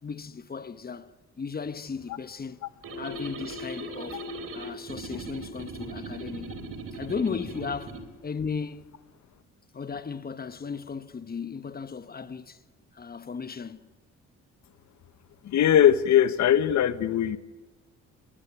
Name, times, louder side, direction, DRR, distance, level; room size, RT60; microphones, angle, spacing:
voice 1, 0.0-2.6 3.0-4.3 4.5-8.9 9.7-12.6 12.9-13.9, left 5 dB, 30° left, 1.3 m, -36 dB
sound 1, 2.8-8.1, right 2 dB, 50° right, 3.6 m, -38 dB
voice 2, 15.4-17.4, left 10 dB, 70° left, 1.4 m, -20 dB
21.5 x 18.0 x 9.6 m
cardioid pair, 90°, 30 cm